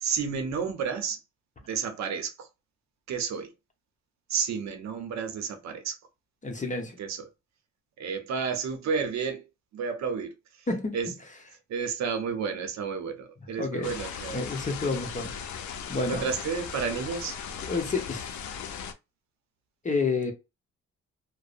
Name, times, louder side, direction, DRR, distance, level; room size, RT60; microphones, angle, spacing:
voice 1, 0.0-1.2 1.7-2.5 3.1-3.5 4.3-6.0 7.0-7.2 8.0-9.4 9.7-10.3 10.9-11.1 11.7-14.4 16.1-17.4, right 6 dB, 65° right, 0.7 m, -31 dB
voice 2, 6.4-7.0 10.7-11.0 13.6-13.9 14.3-15.3 15.9-16.3 17.7-18.2 19.8-20.3, left 3 dB, 25° left, 0.8 m, -29 dB
sound 1, 13.8-18.9, left 7 dB, 70° left, 0.5 m, -38 dB
2.6 x 2.0 x 2.4 m
cardioid pair, 90°, 30 cm